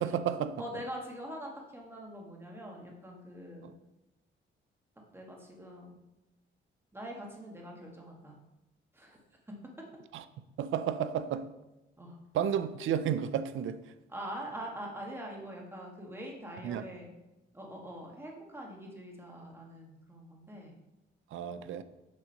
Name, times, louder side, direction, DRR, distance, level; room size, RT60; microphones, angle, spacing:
voice 1, 0.0-0.6 10.1-10.2 10.6-11.5 12.3-13.9 16.6-16.9 21.3-21.8, right 9 dB, 85° right, 0.5 m, -32 dB
voice 2, 0.6-3.7 5.1-5.9 6.9-8.4 8.9-9.2 12.0-12.2 14.1-17.1 17.5-20.7 21.5-21.6, equal, 10° right, 1.9 m, -44 dB
7.4 x 3.8 x 6.5 m
cardioid pair, 100°, 20 cm